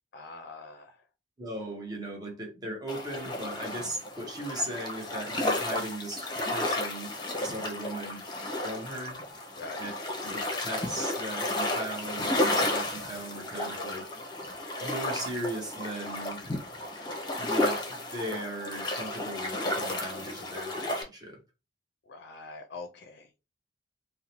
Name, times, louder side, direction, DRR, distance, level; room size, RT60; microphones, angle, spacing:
voice 1, 0.1-1.0 9.6-9.8 22.1-23.4, left 3 dB, 60° left, 0.4 m, -44 dB
voice 2, 1.4-7.1 7.4-8.2 8.6-9.2 9.8-9.9 10.2-14.1 14.8-16.5 17.4-21.4, right 1 dB, 20° right, 0.8 m, -38 dB
sound 1, 2.9-21.0, left 1 dB, 25° left, 0.7 m, -32 dB
2.7 x 2.1 x 2.9 m
head